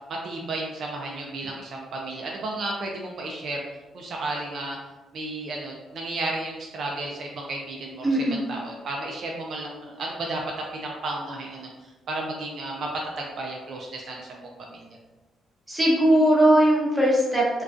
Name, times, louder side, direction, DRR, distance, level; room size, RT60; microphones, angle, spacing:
voice 1, 0.2-3.6 3.9-4.8 5.1-10.4 10.7-11.7 12.1-12.9 13.2-14.9, right 2 dB, 60° right, -1 dB, 0.4 m, -33 dB
voice 2, 8.0-8.4 15.7-17.6, right 1 dB, 10° right, -5 dB, 0.8 m, -19 dB
2.3 x 2.2 x 2.4 m, 1.1 s
cardioid pair, 90°, 0 cm